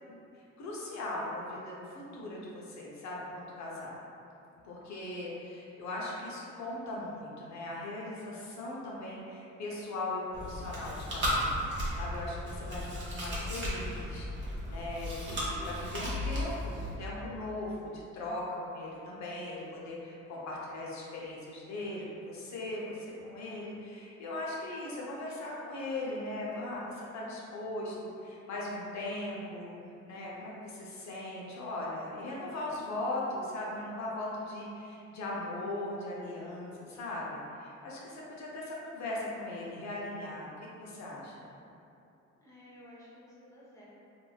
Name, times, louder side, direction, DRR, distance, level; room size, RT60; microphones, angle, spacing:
voice 1, 0.1-3.9 4.6-11.6 12.0-29.8 30.1-40.5 40.8-41.4, left 2 dB, 65° left, -5 dB, 0.6 m, -39 dB
Chewing mastication, 10.3-16.9, equal, 40° right, 0.9 m, -35 dB
voice 2, 42.4-44.0, left 1 dB, 10° left, -8 dB, 0.8 m, -54 dB
3.1 x 2.6 x 2.2 m, 2.8 s
cardioid pair, 90°, 30 cm